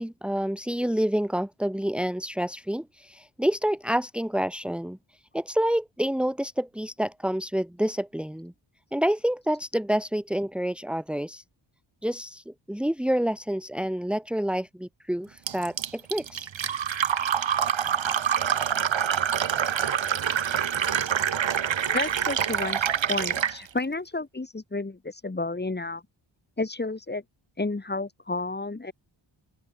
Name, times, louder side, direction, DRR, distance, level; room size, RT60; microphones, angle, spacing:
voice 1, 0.0-5.0 5.3-8.5 8.9-11.4 12.0-16.5, equal, ahead, 3.4 m, -28 dB
Fill (with liquid), 15.5-23.6, right 8 dB, 70° right, 3.2 m, -26 dB
voice 2, 21.9-26.0 26.6-27.2 27.6-28.9, left 3 dB, 20° left, 7.9 m, -31 dB
open air
wide cardioid pair, 160°, 47 cm